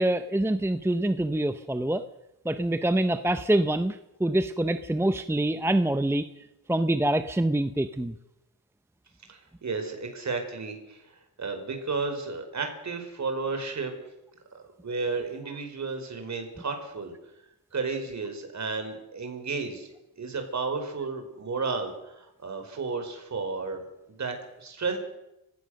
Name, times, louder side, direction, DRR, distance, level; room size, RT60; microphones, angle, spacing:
voice 1, 0.0-2.0 2.4-6.3 6.7-8.1, right 1 dB, 5° right, 10 dB, 0.8 m, -25 dB
voice 2, 9.3-13.9 14.5-17.1 17.7-19.9 20.2-23.8 24.1-25.0, right 4 dB, 45° right, 6 dB, 5.1 m, -33 dB
30.0 x 17.0 x 6.5 m, 0.91 s
wide cardioid pair, 125°, 38 cm